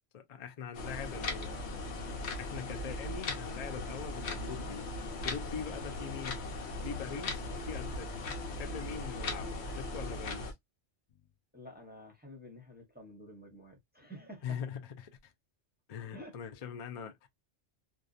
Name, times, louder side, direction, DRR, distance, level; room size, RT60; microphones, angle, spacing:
voice 1, 0.1-1.6 2.4-4.9 5.2-6.4 6.8-8.1 8.5-10.5 14.4-15.3 15.9-17.3, left 7 dB, 50° left, 0.5 m, -42 dB
sound 1, 0.7-10.5, left 2 dB, 70° left, 1.0 m, -38 dB
voice 2, 8.9-9.6 11.5-14.6 16.1-16.4, equal, 10° right, 0.7 m, -50 dB
2.6 x 2.3 x 2.3 m
omnidirectional pair, 1.2 m